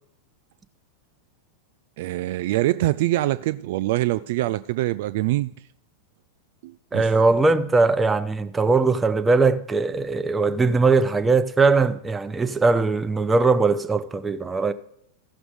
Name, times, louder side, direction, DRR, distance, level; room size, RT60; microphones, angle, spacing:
voice 1, 2.0-5.5 6.6-7.1, right 16 dB, 50° right, 0.3 m, -24 dB
voice 2, 6.9-14.7, right 3 dB, 15° right, 0.6 m, -20 dB
15.0 x 6.1 x 4.8 m
figure-of-eight pair, 90°, 0 cm